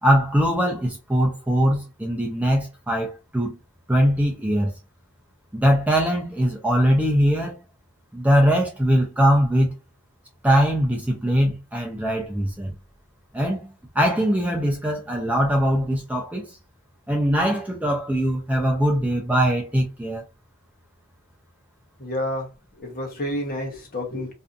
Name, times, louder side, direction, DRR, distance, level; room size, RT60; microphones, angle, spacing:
voice 1, 0.0-3.6 3.9-4.7 5.5-7.6 8.1-9.7 10.4-12.7 13.3-16.6 17.1-20.2, equal, 5° right, 0.4 m, -21 dB
voice 2, 22.0-22.5 22.8-24.3, left 1 dB, 40° left, 0.8 m, -29 dB
2.6 x 2.3 x 2.4 m
head